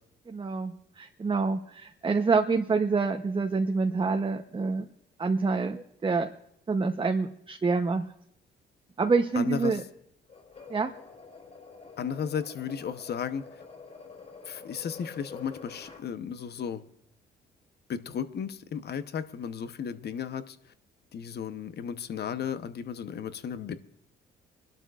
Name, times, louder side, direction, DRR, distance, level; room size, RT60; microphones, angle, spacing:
voice 1, 0.3-4.9 5.2-6.3 6.7-8.0 9.0-9.8 10.7-10.9, right 4 dB, 25° right, 4 dB, 0.9 m, -27 dB
voice 2, 9.4-9.8 12.0-13.4 14.5-16.8 17.9-20.6 21.1-23.8, left 7 dB, 55° left, 11 dB, 1.0 m, -34 dB
sound 1, 10.3-16.1, left 4 dB, 35° left, 4.8 m, -47 dB
25.5 x 12.0 x 2.5 m, 0.74 s
cardioid pair, 90°, 20 cm